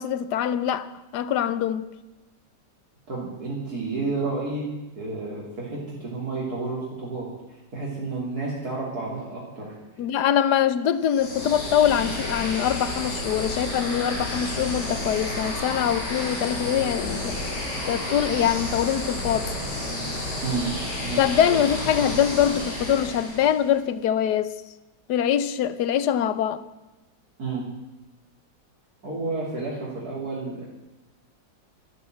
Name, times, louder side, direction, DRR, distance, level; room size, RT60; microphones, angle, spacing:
voice 1, 0.0-1.9 10.0-17.4 17.9-19.6 21.2-24.5 25.1-26.6, left 9 dB, 70° left, 1.2 m, -23 dB
voice 2, 3.1-4.6 5.0-7.3 7.7-9.8 20.4-20.7 21.0-21.6 27.4-27.6 29.0-30.6, right 3 dB, 55° right, 3.4 m, -31 dB
sound 1, 11.0-23.7, left 1 dB, 85° left, 4.8 m, -31 dB
12.5 x 12.0 x 7.7 m
omnidirectional pair, 2.0 m